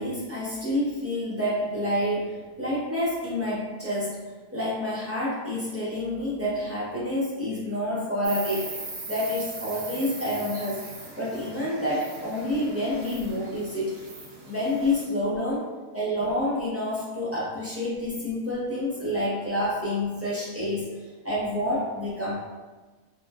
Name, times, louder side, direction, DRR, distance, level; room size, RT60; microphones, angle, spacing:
voice 1, 0.0-4.2 4.5-8.7 9.1-10.8 11.2-13.9 14.5-15.7 15.9-21.0 21.2-22.4, left 1 dB, 25° right, -9 dB, 0.3 m, -28 dB
Insect, 8.2-15.0, right 3 dB, 70° right, 0.9 m, -40 dB
3.0 x 2.1 x 2.2 m, 1.3 s
omnidirectional pair, 1.3 m